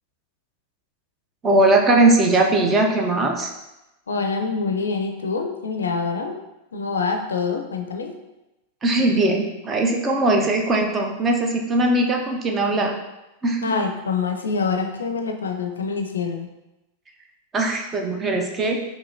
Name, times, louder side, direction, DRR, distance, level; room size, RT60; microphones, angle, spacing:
voice 1, 1.4-3.5 8.8-12.9 13.4-13.8 17.5-18.8, right 2 dB, 20° right, 3 dB, 0.6 m, -20 dB
voice 2, 4.1-6.4 6.7-8.2 13.6-16.5, left 4 dB, 70° left, 4 dB, 0.4 m, -25 dB
5.5 x 2.7 x 2.7 m, 0.96 s
figure-of-eight pair, 90°, 0 cm